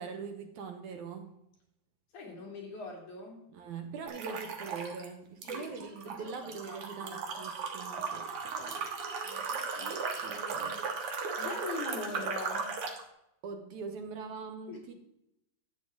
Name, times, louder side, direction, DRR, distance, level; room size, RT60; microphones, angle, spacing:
voice 1, 0.0-1.4 3.5-8.8 9.8-10.8 13.4-14.9, right 5 dB, 70° right, 6 dB, 2.3 m, -42 dB
voice 2, 2.1-3.5 5.4-7.2 9.2-10.2 11.4-12.7 14.7-14.9, left 3 dB, 65° left, -1 dB, 4.0 m, -43 dB
sound 1, 4.1-5.1 5.4-13.0, right 5 dB, 55° right, 1.9 m, -37 dB
12.5 x 8.6 x 3.6 m, 0.81 s
omnidirectional pair, 3.8 m